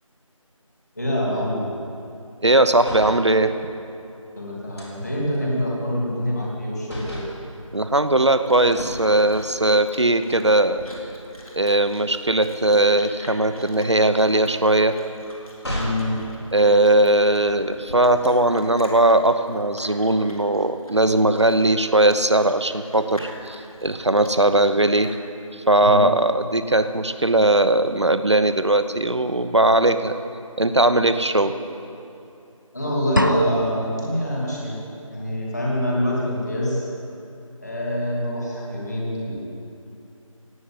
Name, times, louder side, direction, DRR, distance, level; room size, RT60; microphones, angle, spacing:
voice 1, 1.0-1.6 4.4-7.2 15.8-16.2 25.8-26.0 32.7-34.8 35.1-36.8 37.6-39.4, equal, 30° left, -4 dB, 2.9 m, -25 dB
voice 2, 2.4-3.5 7.7-10.8 11.6-15.0 16.5-25.2 25.5-30.2 30.6-31.5, right 1 dB, 55° right, 10 dB, 0.9 m, -19 dB
sound 1, 2.7-3.3 4.8-6.6 6.8-7.4 8.7-9.7 10.2-10.4 10.7-16.1 17.2-17.9, equal, 50° left, 4.3 m, -38 dB
Chewing mastication, 8.1-25.2, left 1 dB, 90° left, 3.8 m, -44 dB
sound 2, 33.2-34.1, equal, 35° right, 0.5 m, -24 dB
17.0 x 8.5 x 9.4 m, 2.8 s
figure-of-eight pair, 180°, 18 cm